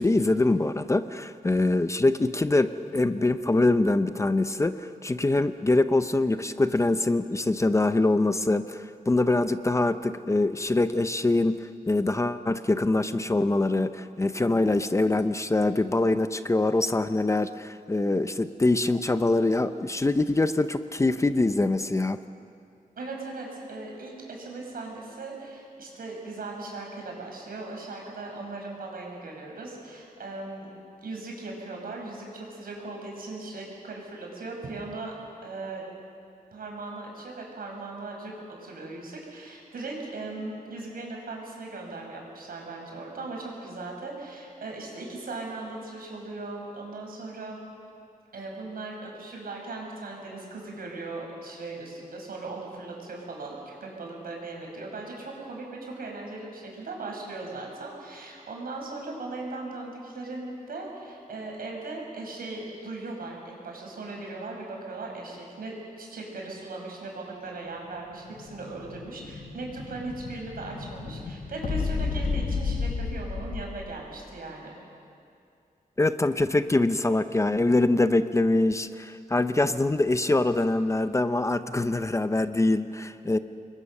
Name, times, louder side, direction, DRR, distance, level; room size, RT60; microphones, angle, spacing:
voice 1, 0.0-22.2 76.0-83.4, left 2 dB, 20° left, 11 dB, 0.6 m, -24 dB
voice 2, 23.0-30.7 31.0-35.1 35.4-35.8 36.5-38.3 38.6-47.6 48.3-74.7, right 3 dB, 85° right, 0 dB, 6.0 m, -38 dB
Explosion, 67.9-74.0, left 4 dB, 75° left, 1.6 m, -32 dB
28.5 x 21.5 x 6.6 m, 2.5 s
wide cardioid pair, 160°, 15 cm